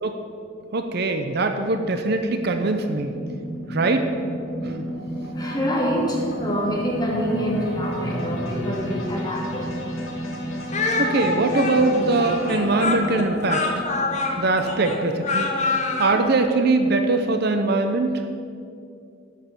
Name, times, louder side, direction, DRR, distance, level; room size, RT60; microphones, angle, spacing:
voice 1, 0.7-3.1 3.7-4.1 4.6-4.8 11.0-13.8 14.4-15.5 16.0-18.2, right 3 dB, 50° right, 6 dB, 0.7 m, -22 dB
sound 1, 0.8-17.2, equal, 80° left, 3.3 m, -33 dB
voice 2, 5.4-9.7, equal, 20° left, -3 dB, 2.1 m, -26 dB
Speech, 10.7-16.2, left 3 dB, 35° left, 1.1 m, -25 dB
11.0 x 6.6 x 7.4 m, 2.5 s
head